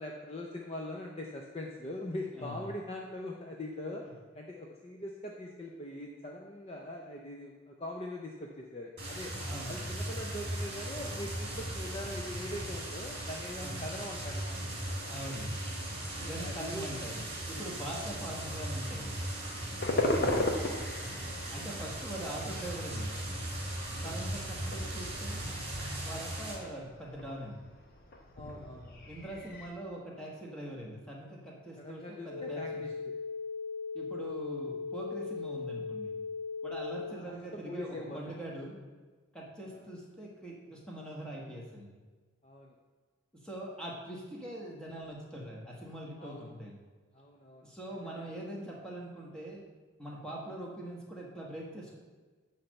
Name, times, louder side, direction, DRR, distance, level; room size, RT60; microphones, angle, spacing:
voice 1, 0.0-4.0 4.3-9.3 9.7-14.8 16.2-17.0 21.3-21.7 24.2-24.4 28.4-29.0 31.8-32.9 37.0-38.3 39.7-39.8 42.4-42.7 46.2-46.5 47.1-47.6 48.0-48.4, left 1 dB, 30° left, 0 dB, 0.6 m, -42 dB
sound 1, 9.0-26.5, right 1 dB, 30° right, 2.4 m, -38 dB
voice 2, 9.4-9.9 13.6-13.9 15.1-15.6 16.2-19.1 19.9-20.5 21.5-23.1 24.0-25.4 26.0-27.6 29.0-32.8 33.9-36.2 36.6-38.8 39.3-42.0 43.3-46.8 47.6-49.6 50.0-52.0, right 1 dB, 5° left, -4 dB, 1.4 m, -42 dB
sound 2, 19.8-29.7, left 1 dB, 45° left, 0.9 m, -37 dB
sound 3, 32.2-37.2, left 4 dB, 85° left, 0.7 m, -38 dB
10.0 x 3.3 x 6.5 m, 1.4 s
head